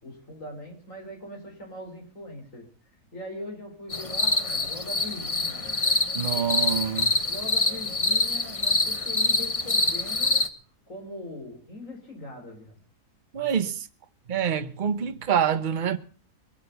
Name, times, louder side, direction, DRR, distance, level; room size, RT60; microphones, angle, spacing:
voice 1, 0.0-2.7 3.1-5.8 7.3-10.4 10.9-12.8, left 1 dB, 50° left, 4.7 m, -41 dB
sound 1, 3.9-10.5, left 2 dB, 25° left, 0.9 m, -25 dB
voice 2, 6.1-7.1 13.3-13.9 14.3-16.0, right 8 dB, 35° right, 0.9 m, -26 dB
22.0 x 8.7 x 6.8 m
omnidirectional pair, 1.7 m